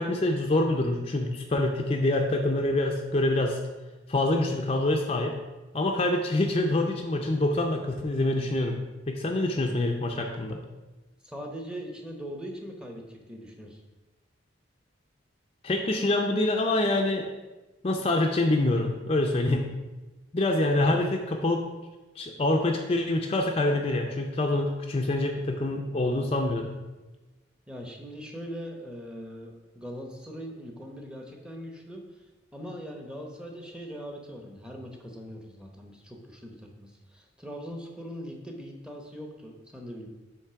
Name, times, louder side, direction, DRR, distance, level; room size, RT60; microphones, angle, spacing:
voice 1, 0.0-3.6 4.1-5.3 5.7-8.8 9.1-10.6 15.6-17.3 17.8-19.7 20.3-21.7 22.2-26.8, left 2 dB, 30° left, 2 dB, 0.5 m, -26 dB
voice 2, 11.2-13.8 27.7-32.2 32.5-40.1, equal, 5° right, 1 dB, 0.8 m, -41 dB
8.1 x 3.2 x 5.7 m, 1.1 s
head